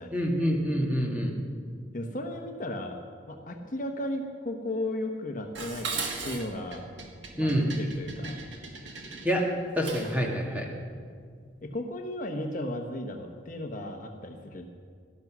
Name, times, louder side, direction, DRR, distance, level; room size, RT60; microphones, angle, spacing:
voice 1, 0.1-1.4 7.4-7.7 9.2-9.4 9.7-10.7, equal, 10° right, -1 dB, 2.0 m, -27 dB
voice 2, 1.9-3.0 3.3-6.9 7.3-8.4 11.6-14.7, left 1 dB, 40° left, 4 dB, 1.1 m, -35 dB
Dishes pots and pans, 5.5-10.2, right 4 dB, 70° right, 1.8 m, -38 dB
18.0 x 12.5 x 6.2 m, 2.1 s
head